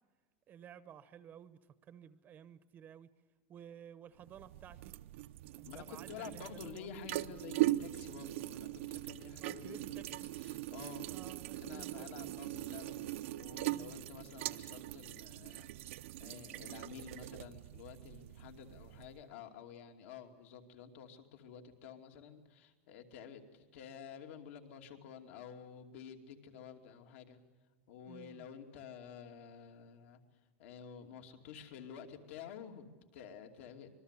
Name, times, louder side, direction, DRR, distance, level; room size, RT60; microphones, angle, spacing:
voice 1, 0.5-3.1 3.5-4.9 5.6-6.9 9.4-10.3 11.1-12.3 13.6-14.0 28.1-28.5, right 9 dB, 25° right, 14 dB, 0.8 m, -54 dB
sound 1, 4.2-19.2, right 17 dB, 70° right, 0.7 m, -41 dB
voice 2, 5.6-27.4 27.9-30.2 30.6-33.9, left 7 dB, 70° left, 4 dB, 2.7 m, -51 dB
26.5 x 21.0 x 8.3 m, 1.3 s
supercardioid pair, 160°, 7 cm